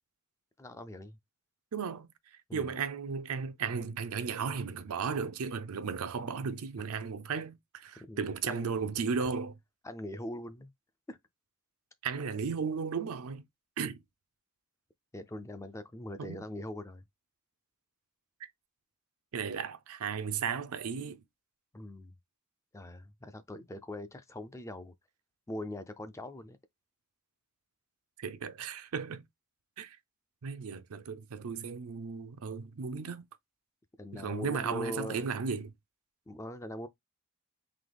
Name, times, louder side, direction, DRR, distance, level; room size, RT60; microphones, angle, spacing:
voice 1, 0.6-1.2 2.5-2.8 8.0-8.8 9.2-9.3 9.8-10.7 11.1-11.2 15.1-17.0 21.7-22.1 22.7-24.9 25.5-26.6 34.0-35.3 36.3-36.9, left 1 dB, 15° left, 0.3 m, -42 dB
voice 2, 1.7-2.1 2.5-9.5 12.0-13.4 13.8-14.0 16.2-16.4 19.3-21.2 28.2-29.2 29.8-30.0 30.4-33.2 34.1-35.7, right 5 dB, 80° right, 0.5 m, -35 dB
3.9 x 2.8 x 3.3 m
head